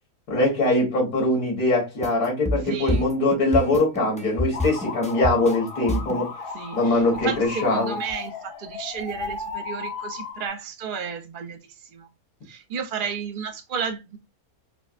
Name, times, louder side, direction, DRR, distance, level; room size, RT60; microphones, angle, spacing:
voice 1, 0.3-6.3 6.7-7.9, left 2 dB, 80° left, 2.0 m, -22 dB
sound 1, 2.0-6.2, left 1 dB, 10° left, 0.3 m, -27 dB
voice 2, 2.7-3.1 6.5-12.1 12.5-14.2, right 6 dB, 45° right, 0.7 m, -33 dB
sound 2, 4.5-10.5, left 4 dB, 50° left, 0.8 m, -35 dB
4.8 x 2.1 x 2.5 m
omnidirectional pair, 1.5 m